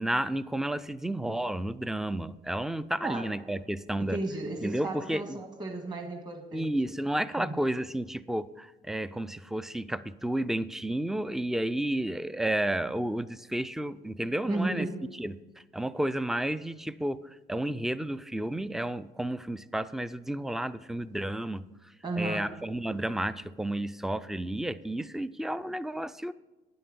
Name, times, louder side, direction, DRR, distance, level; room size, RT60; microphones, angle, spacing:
voice 1, 0.0-4.2 4.6-5.4 6.5-14.9 15.2-15.4 15.7-21.6 22.2-26.3, right 1 dB, ahead, 16 dB, 0.3 m, -31 dB
voice 2, 4.0-6.7 7.3-7.5 14.5-15.0 22.0-22.5, right 2 dB, 25° right, 4 dB, 1.5 m, -34 dB
10.5 x 7.8 x 5.2 m, 1.2 s
cardioid pair, 110°, 17 cm